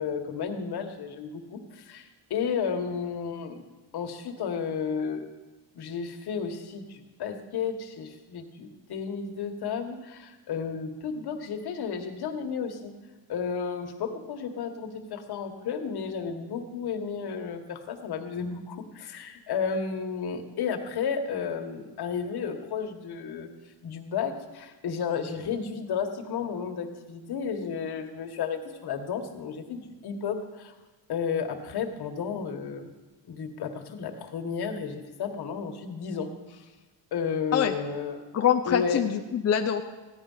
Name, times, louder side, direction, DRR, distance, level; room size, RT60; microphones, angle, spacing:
voice 1, 0.0-3.7 3.9-5.3 5.7-12.9 13.3-23.5 23.8-30.7 31.1-32.9 33.3-36.7 37.1-38.2 38.7-39.0, left 6 dB, 60° left, 5 dB, 1.7 m, -32 dB
voice 2, 38.3-39.8, left 9 dB, 35° left, 4 dB, 0.7 m, -24 dB
15.5 x 10.5 x 5.7 m, 1.2 s
cardioid pair, 125°, 44 cm